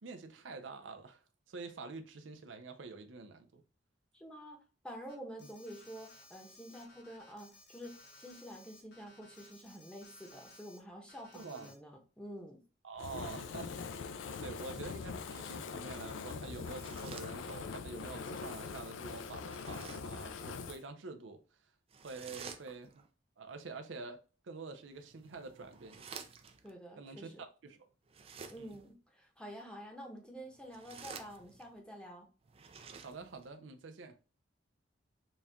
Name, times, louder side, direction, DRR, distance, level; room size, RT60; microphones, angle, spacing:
voice 1, 0.0-1.2 1.5-3.6 11.3-11.8 12.8-14.0 14.4-21.4 22.0-23.0 23.4-24.2 24.4-26.0 27.0-27.9 28.6-28.8 33.0-34.2, right 3 dB, 85° right, 0.5 m, -47 dB
voice 2, 4.1-12.6 26.6-27.4 28.5-32.3, equal, 5° left, 0.8 m, -49 dB
Alarm, 5.1-10.8 11.1-11.7, left 2 dB, 55° left, 1.0 m, -59 dB
Fire, 13.0-20.8, left 5 dB, 90° left, 0.4 m, -43 dB
sound 1, 16.6-17.9 19.4-20.2 21.9-23.1 24.9-26.7 28.1-28.9 30.5-31.8 32.4-33.5, right 6 dB, 30° right, 0.4 m, -51 dB
4.1 x 2.3 x 3.4 m
head